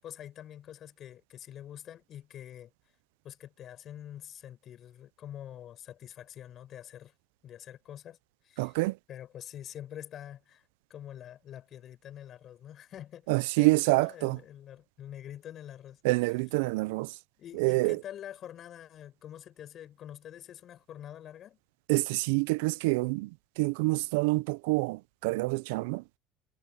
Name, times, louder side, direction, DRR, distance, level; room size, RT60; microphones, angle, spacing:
voice 1, 0.0-2.7 3.2-7.1 7.4-8.2 8.4-8.7 9.1-10.6 10.9-13.3 13.6-16.0 17.4-21.6, left 11 dB, 45° left, 7.4 m, -46 dB
voice 2, 8.6-9.0 13.3-14.4 16.0-17.2 17.5-18.0 21.9-26.0, right 25 dB, 80° right, 0.5 m, -27 dB
supercardioid pair, 100°, 0 cm